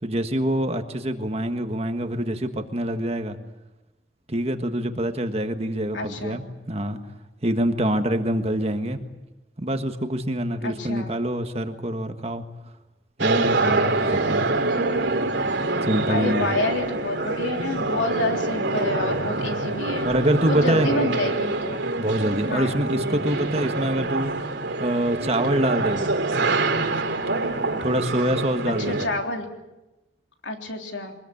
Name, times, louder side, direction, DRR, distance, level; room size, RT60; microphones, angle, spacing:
voice 1, 0.0-3.4 4.3-7.0 7.4-9.0 9.6-12.4 13.2-14.5 15.8-16.5 19.2-19.5 20.0-20.9 22.0-24.3 24.8-26.1 27.8-29.1, right 1 dB, 35° right, 7 dB, 1.6 m, -25 dB
voice 2, 5.9-6.4 10.6-11.1 16.1-20.1 20.5-21.8 22.5-22.8 28.7-29.5 30.4-31.2, left 2 dB, 80° left, 3 dB, 3.5 m, -28 dB
sound 1, 13.2-29.1, right 2 dB, 85° right, 2.8 m, -25 dB
23.5 x 21.0 x 8.6 m, 1.0 s
head